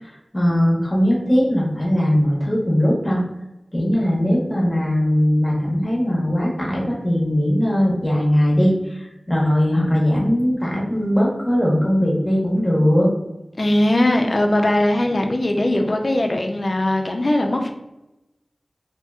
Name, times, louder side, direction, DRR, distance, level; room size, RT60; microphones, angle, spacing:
voice 1, 0.0-3.2 3.7-13.1, equal, 30° left, -3 dB, 0.9 m, -19 dB
voice 2, 13.6-17.7, left 1 dB, 55° left, 3 dB, 0.4 m, -19 dB
2.8 x 2.7 x 2.3 m, 0.94 s
wide cardioid pair, 50°, 0 cm